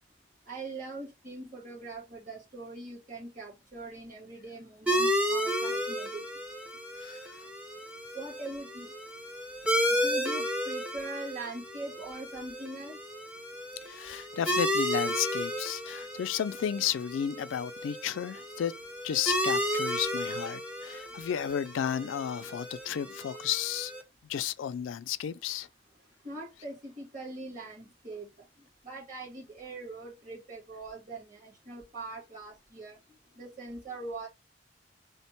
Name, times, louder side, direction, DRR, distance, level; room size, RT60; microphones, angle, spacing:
voice 1, 0.5-6.3 8.1-8.9 9.9-13.0 26.2-28.3 28.8-33.0 33.4-34.3, right 2 dB, 40° right, 1.9 m, -42 dB
sound 1, 4.9-24.0, equal, 5° right, 0.6 m, -33 dB
voice 2, 13.8-18.7 19.0-23.9 24.3-25.7, left 9 dB, 85° left, 0.3 m, -33 dB
3.3 x 2.2 x 4.3 m
head